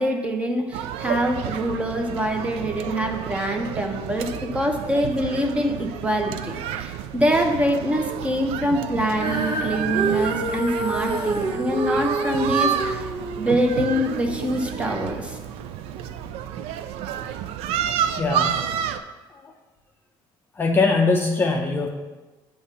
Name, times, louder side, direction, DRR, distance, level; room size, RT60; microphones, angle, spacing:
voice 1, 0.0-13.1 13.4-15.4, equal, 10° right, 3 dB, 0.7 m, -25 dB
sound 1, 0.7-19.0, right 9 dB, 85° right, 0.4 m, -30 dB
Female singing, 9.1-15.5 16.2-16.3, right 2 dB, 65° right, 1.4 m, -28 dB
voice 2, 18.2-18.6 20.6-21.9, left 3 dB, 20° left, 2 dB, 0.5 m, -21 dB
8.1 x 3.0 x 5.6 m, 1.2 s
cardioid pair, 140°, 10 cm